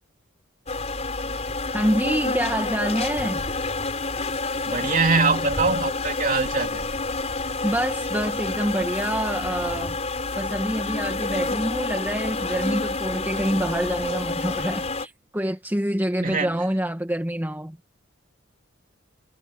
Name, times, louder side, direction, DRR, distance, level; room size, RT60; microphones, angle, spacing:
sound 1, 0.7-15.1, left 3 dB, 35° left, 5.0 m, -28 dB
voice 1, 1.7-3.4 7.6-10.0 10.4-17.8, equal, 10° right, 1.7 m, -26 dB
voice 2, 4.6-6.9 16.2-16.6, right 4 dB, 40° right, 3.4 m, -23 dB
head